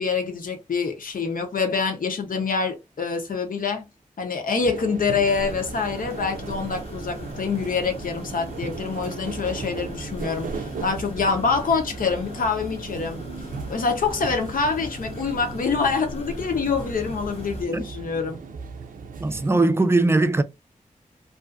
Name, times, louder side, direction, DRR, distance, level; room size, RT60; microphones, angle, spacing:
voice 1, 0.0-3.9 4.2-13.2 13.7-18.4, left 5 dB, 80° left, 0.8 m, -26 dB
sound 1, 4.6-19.5, right 5 dB, 80° right, 0.4 m, -37 dB
sound 2, 5.3-17.6, left 2 dB, 45° left, 0.6 m, -39 dB
voice 2, 19.2-20.4, right 2 dB, 20° right, 0.4 m, -20 dB
2.5 x 2.4 x 2.4 m
wide cardioid pair, 85°, 14 cm